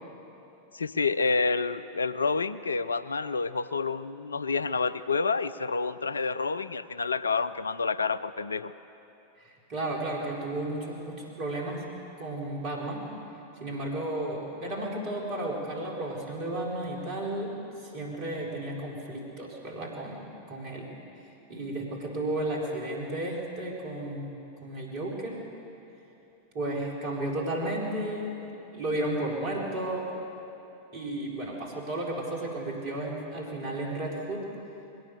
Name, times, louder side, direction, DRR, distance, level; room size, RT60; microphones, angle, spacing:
voice 1, 0.7-8.7, left 4 dB, 75° left, 15 dB, 0.5 m, -28 dB
voice 2, 9.4-11.8 12.2-13.1 13.6-20.9 21.5-25.4 26.5-28.4 28.7-30.1 30.9-34.5, right 1 dB, 45° right, -2 dB, 4.8 m, -33 dB
21.5 x 17.5 x 7.0 m, 2.9 s
figure-of-eight pair, 90°, 0 cm